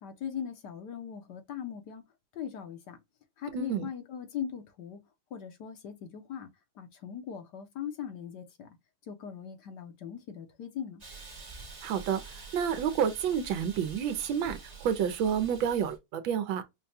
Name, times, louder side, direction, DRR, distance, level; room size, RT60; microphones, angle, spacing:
voice 1, 0.0-2.0 2.3-3.0 3.4-5.0 5.3-6.5 6.8-8.7 9.1-11.0, left 8 dB, 65° left, 1.2 m, -40 dB
voice 2, 3.5-3.9 11.8-16.6, right 8 dB, 75° right, 1.4 m, -30 dB
Hiss, 11.0-16.0, right 4 dB, 25° right, 0.9 m, -47 dB
5.2 x 2.2 x 2.6 m
omnidirectional pair, 2.2 m